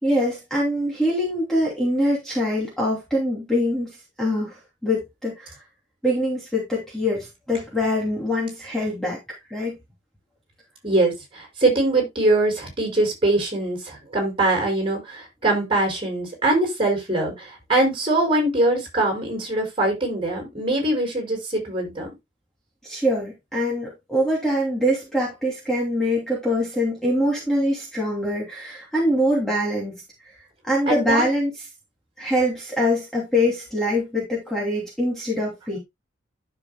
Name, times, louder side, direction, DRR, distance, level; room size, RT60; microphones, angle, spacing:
voice 1, 0.0-5.5 6.0-9.2 9.5-9.8 22.8-30.0 30.6-31.5 32.2-35.8, equal, 5° left, 2.8 m, -24 dB
voice 2, 10.8-22.1 30.9-31.3, right 2 dB, 25° right, 5.3 m, -22 dB
12.0 x 6.9 x 2.2 m
head